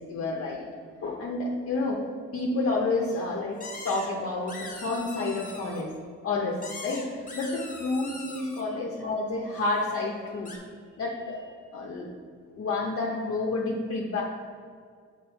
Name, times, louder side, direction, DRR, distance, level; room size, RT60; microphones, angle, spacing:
voice 1, 0.1-0.6 1.0-2.0 2.3-5.9 6.2-10.6 11.0-12.1 12.5-14.2, left 3 dB, 50° left, -2 dB, 0.8 m, -30 dB
sound 1, 3.6-4.1 4.5-5.8 6.6-8.6 10.5-10.6, left 2 dB, 25° left, 1.3 m, -41 dB
5.3 x 4.5 x 4.5 m, 2.1 s
cardioid pair, 90°, 30 cm